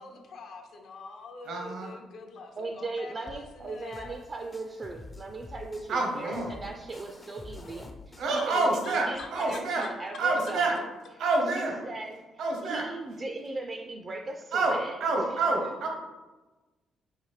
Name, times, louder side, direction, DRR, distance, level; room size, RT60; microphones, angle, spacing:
voice 1, 0.0-4.2 8.4-9.9, left 4 dB, 70° left, 3 dB, 0.6 m, -45 dB
voice 2, 1.5-1.9 5.9-6.5 8.2-9.9 10.2-10.8 11.2-11.8 12.4-12.9 14.5-15.9, right 2 dB, 75° right, 1 dB, 0.9 m, -27 dB
voice 3, 2.6-10.9 11.5-12.2 12.6-15.2, right 3 dB, 40° right, 3 dB, 0.4 m, -38 dB
sound 1, 3.3-9.2, left 2 dB, 25° left, 0.4 m, -48 dB
4.8 x 2.5 x 3.1 m, 1.2 s
cardioid pair, 90°, 0 cm